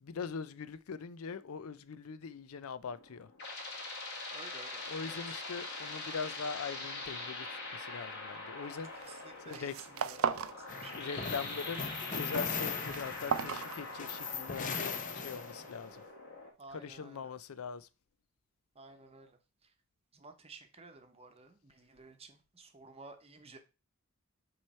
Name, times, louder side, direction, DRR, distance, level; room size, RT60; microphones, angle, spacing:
voice 1, 0.0-3.3 4.8-7.5 7.7-8.9 9.5-9.7 10.8-11.8 12.2-16.0 16.7-17.9, left 5 dB, 85° left, 0.5 m, -42 dB
sound 1, 2.9-16.5, left 2 dB, 55° left, 2.0 m, -43 dB
voice 2, 4.3-5.4 8.6-8.8 9.0-10.5 10.8-11.0 16.6-17.3 18.8-19.4 20.1-23.6, right 3 dB, 30° right, 0.9 m, -53 dB
sound 2, 8.8-9.2 9.4-10.6 10.9-11.5 11.9-14.3, right 7 dB, 75° right, 0.5 m, -36 dB
sound 3, 10.7-15.9, left 5 dB, 40° left, 0.7 m, -39 dB
7.4 x 3.2 x 4.3 m
head